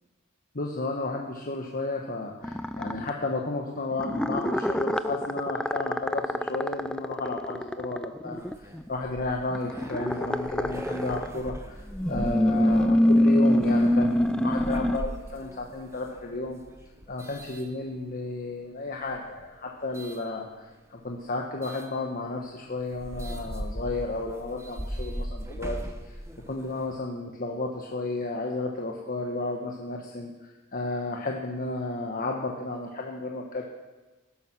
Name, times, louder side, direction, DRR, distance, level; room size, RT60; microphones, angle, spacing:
voice 1, 0.5-16.6 17.1-20.7 20.9-26.2 26.5-30.3 30.7-33.6, left 2 dB, 40° left, 0 dB, 1.2 m, -32 dB
sound 1, 2.4-3.1 3.9-8.9 9.5-11.4 11.9-15.0, left 1 dB, 5° left, 0.4 m, -25 dB
sound 2, 8.3-18.3 19.0-20.2 21.6-21.9 22.4-22.5 22.8-27.0, equal, 15° right, 1.1 m, -40 dB
16.0 x 12.0 x 6.1 m, 1.2 s
head